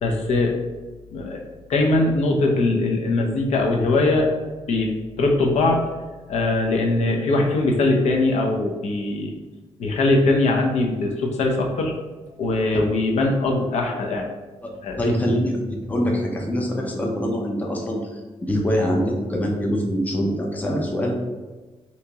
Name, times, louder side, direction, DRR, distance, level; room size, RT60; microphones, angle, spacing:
voice 1, 0.0-0.6 1.1-1.4 1.7-4.3 4.7-5.9 6.3-9.3 9.8-11.9 12.4-14.3 14.8-15.0, left 2 dB, 80° left, 1 dB, 0.6 m, -21 dB
voice 2, 15.0-21.1, equal, 15° left, 0 dB, 0.5 m, -24 dB
3.5 x 2.9 x 2.8 m, 1.2 s
wide cardioid pair, 155°, 11 cm